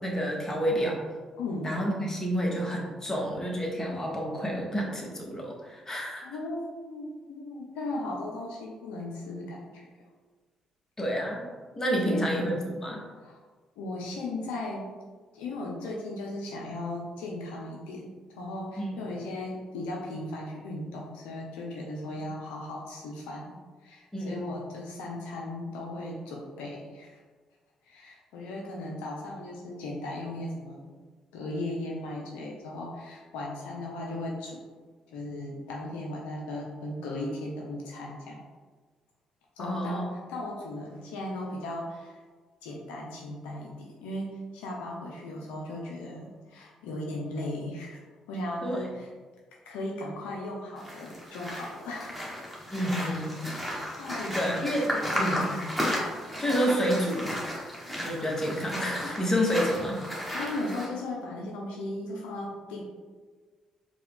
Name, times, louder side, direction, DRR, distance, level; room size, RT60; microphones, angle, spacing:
voice 1, 0.0-1.0 1.6-6.3 11.0-11.5 11.7-13.0 24.1-24.5 39.6-40.1 48.6-48.9 52.7-53.4 54.3-54.9 55.2-55.4 56.4-57.4 58.0-60.0, equal, 25° left, -1 dB, 1.2 m, -29 dB
voice 2, 1.4-1.8 6.2-9.9 12.0-12.7 13.2-13.4 13.8-14.9 15.3-18.1 18.3-23.5 23.8-27.2 27.8-30.9 31.3-34.6 35.1-38.4 39.6-42.2 42.6-48.0 48.3-49.1 49.7-52.3 54.0-54.6 54.9-55.6 56.2-56.4 60.3-62.8, left 1 dB, 80° left, -2 dB, 0.5 m, -37 dB
sound 1, 50.8-60.9, equal, 5° left, 1.4 m, -34 dB
4.5 x 2.2 x 3.6 m, 1.4 s
hypercardioid pair, 50°, 2 cm